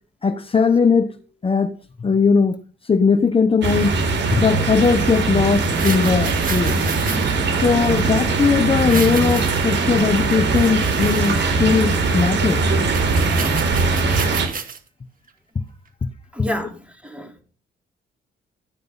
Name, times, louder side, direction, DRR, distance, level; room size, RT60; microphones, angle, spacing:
voice 1, 0.2-1.1 1.4-1.7 2.0-4.0 4.3-6.8 7.6-12.7, left 5 dB, 30° left, 1.0 m, -19 dB
sound 1, 3.6-14.5, right 3 dB, 65° right, 4.3 m, -20 dB
sound 2, 5.5-7.4 8.7-9.8 10.3-11.7 12.0-12.1 12.5-12.6 12.9-14.8 15.3-15.4, right 5 dB, 45° right, 2.2 m, -32 dB
voice 2, 16.3-17.4, left 1 dB, 5° right, 3.8 m, -29 dB
14.0 x 9.3 x 5.7 m
cardioid pair, 90°, 20 cm